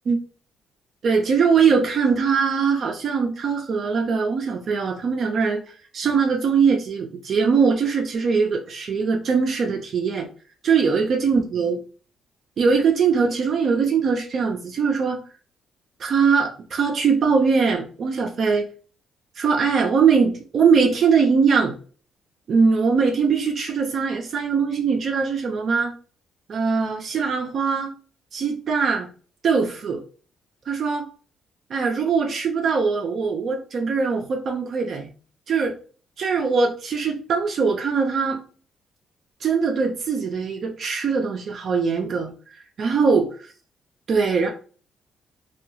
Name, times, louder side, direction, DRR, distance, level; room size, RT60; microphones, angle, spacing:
voice 1, 1.0-5.6 5.9-10.3 10.6-11.8 12.6-15.2 16.0-18.7 19.4-21.8 22.5-25.9 26.5-27.9 28.3-29.1 29.4-30.0 30.7-31.1 31.7-35.1 35.5-35.7 36.2-38.4 39.4-42.3 42.8-43.3 44.1-44.5, right 5 dB, 55° right, 2 dB, 0.4 m, -21 dB
2.3 x 2.2 x 3.0 m, 0.39 s
cardioid pair, 90°, 0 cm